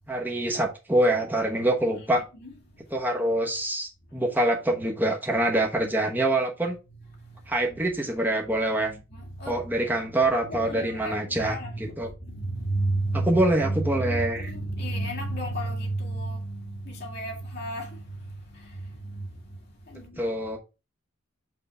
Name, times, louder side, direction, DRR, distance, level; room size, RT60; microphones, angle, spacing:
voice 1, 0.1-2.2 2.9-6.8 7.5-8.9 9.5-12.1 13.1-14.5 20.2-20.6, right 1 dB, 10° right, 1.0 m, -25 dB
voice 2, 2.0-2.5 7.3-7.4 8.8-9.7 10.4-19.4 19.9-20.3, right 1 dB, 50° left, 1.8 m, -32 dB
5.6 x 3.6 x 5.5 m
head